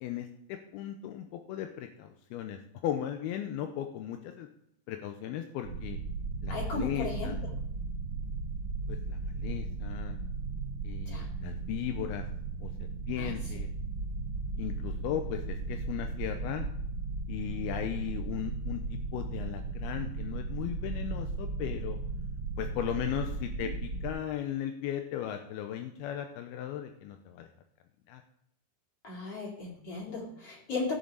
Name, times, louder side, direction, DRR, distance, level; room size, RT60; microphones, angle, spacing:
voice 1, 0.0-4.5 4.9-6.0 6.4-7.4 8.9-10.2 10.8-12.3 12.6-12.7 13.1-13.7 14.6-16.7 17.3-22.0 22.6-27.5 28.1-28.2, left 10 dB, 80° left, 5 dB, 2.3 m, -37 dB
sound 1, 5.6-24.1, right 3 dB, 55° right, 2.7 m, -36 dB
voice 2, 6.5-7.3 11.1-11.3 13.2-13.3 23.6-23.7 29.0-30.9, left 3 dB, 35° left, -4 dB, 4.6 m, -36 dB
16.5 x 7.4 x 4.0 m, 0.75 s
omnidirectional pair, 5.1 m